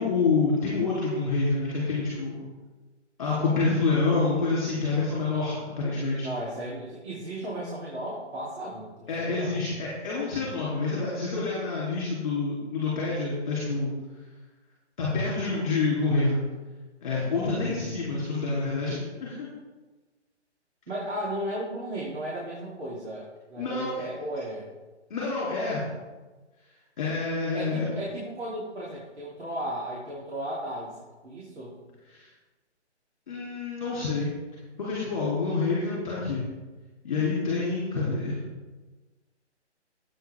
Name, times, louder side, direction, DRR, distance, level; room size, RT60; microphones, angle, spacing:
voice 1, 0.0-2.4 3.2-6.3 9.1-13.9 15.0-16.4 17.0-19.5 23.6-24.0 25.1-25.8 27.0-27.9 32.1-32.3 33.3-34.3 34.8-36.5 37.0-38.4, left 3 dB, 30° left, -6 dB, 3.0 m, -27 dB
voice 2, 6.2-9.6 17.4-18.3 20.9-24.7 27.5-31.0 31.2-31.8, right 1 dB, 70° right, -6 dB, 3.2 m, -35 dB
12.0 x 8.7 x 3.5 m, 1.2 s
hypercardioid pair, 175°, 35 cm